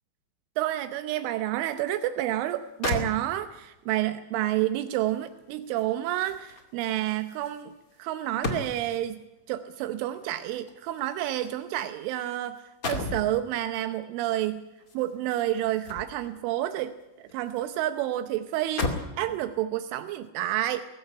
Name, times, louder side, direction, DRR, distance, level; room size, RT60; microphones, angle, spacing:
voice 1, 0.6-7.7 8.0-9.2 9.5-14.6 14.9-16.9 17.2-20.8, right 13 dB, 85° right, 10 dB, 3.3 m, -29 dB
sound 1, 2.5-2.6 2.8-3.7 5.1-9.1 10.1-12.3 12.6-13.3 14.8-16.4 16.8-17.7 18.0-18.1 18.5-19.2 19.9-20.1, left 2 dB, 45° left, 1.1 m, -36 dB
20.0 x 15.0 x 9.9 m, 1.1 s
omnidirectional pair, 5.5 m